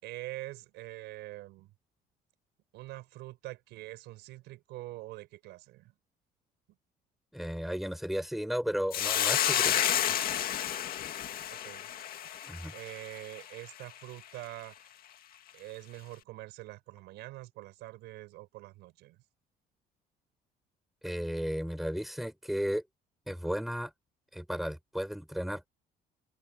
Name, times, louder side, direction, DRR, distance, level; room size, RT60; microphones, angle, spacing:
voice 1, 0.0-1.7 2.7-5.9 11.5-11.9 12.7-14.9 15.5-19.2, right 18 dB, 90° right, 6.3 m, -45 dB
voice 2, 7.3-9.9 12.4-12.7 21.0-22.8 23.3-23.9 24.3-25.7, equal, ahead, 6.0 m, -34 dB
Hiss, 8.9-13.4, left 10 dB, 60° left, 2.1 m, -30 dB
cardioid pair, 110°, 17 cm